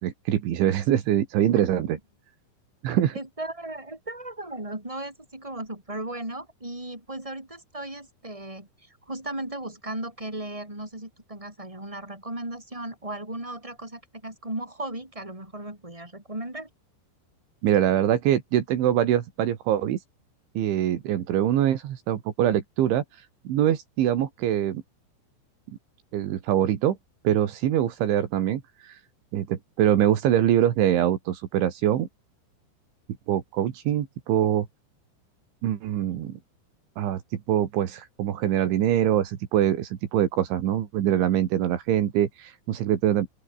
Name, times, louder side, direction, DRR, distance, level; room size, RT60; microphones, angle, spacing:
voice 1, 0.0-2.0 2.8-3.1 17.6-20.0 20.6-23.0 23.5-24.8 26.1-27.0 27.2-28.9 29.3-32.1 33.3-34.7 35.6-36.4 37.0-43.3, right 11 dB, 75° right, 4.5 m, -24 dB
voice 2, 3.1-16.7, right 1 dB, 5° right, 6.9 m, -36 dB
open air
omnidirectional pair, 5.4 m